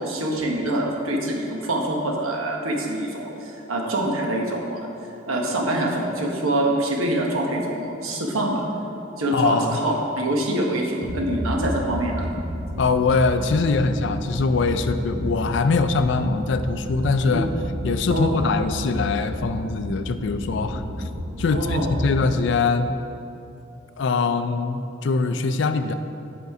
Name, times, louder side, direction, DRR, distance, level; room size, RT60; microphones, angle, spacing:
voice 1, 0.0-4.9 5.3-8.6 9.2-12.3 17.3-17.5 18.1-18.4 21.5-21.9, right 1 dB, 90° right, 0 dB, 1.1 m, -25 dB
voice 2, 9.3-9.8 12.8-17.5 17.8-20.8 21.4-22.9 24.0-25.9, left 4 dB, 60° left, 10 dB, 0.4 m, -22 dB
sound 1, 11.0-22.3, equal, 45° right, 0.7 m, -31 dB
8.1 x 5.2 x 4.8 m, 2.8 s
head